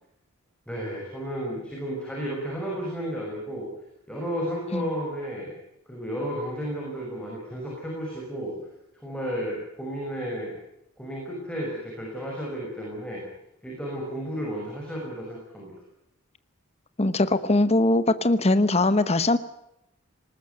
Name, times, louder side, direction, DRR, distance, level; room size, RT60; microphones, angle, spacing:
voice 1, 0.7-3.7 4.1-5.5 5.9-8.5 9.0-10.5 11.0-13.2 13.6-15.7, equal, 5° left, -3 dB, 6.0 m, -32 dB
voice 2, 17.0-19.4, left 2 dB, 30° left, 13 dB, 1.0 m, -21 dB
20.0 x 19.5 x 9.3 m, 0.82 s
head